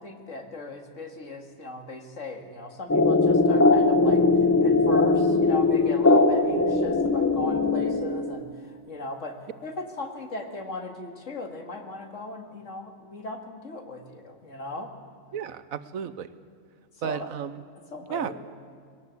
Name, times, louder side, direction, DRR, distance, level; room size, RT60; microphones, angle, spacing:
voice 1, 0.0-9.3 9.6-14.9 17.0-17.3 17.9-18.3, left 2 dB, 65° left, 4 dB, 2.4 m, -37 dB
sound 1, 2.9-8.4, left 3 dB, 10° left, 1.1 m, -20 dB
voice 2, 15.3-16.3 17.0-17.6 18.1-18.3, right 8 dB, 80° right, 14 dB, 1.3 m, -33 dB
20.5 x 18.5 x 8.2 m, 2.1 s
omnidirectional pair, 1.4 m